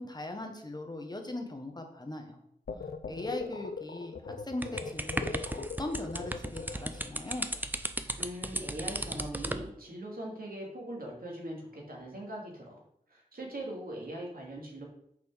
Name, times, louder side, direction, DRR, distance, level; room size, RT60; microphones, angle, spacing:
voice 1, 0.0-2.4 3.1-7.5, left 2 dB, 25° left, 3 dB, 1.4 m, -39 dB
sound 1, 2.7-7.1, left 4 dB, 85° left, 0.7 m, -40 dB
sound 2, 4.6-9.7, right 1 dB, 10° right, 0.6 m, -35 dB
voice 2, 8.2-12.8 13.1-14.8, right 1 dB, 70° right, -2 dB, 2.8 m, -41 dB
6.8 x 5.2 x 6.5 m, 0.75 s
wide cardioid pair, 65°, 16 cm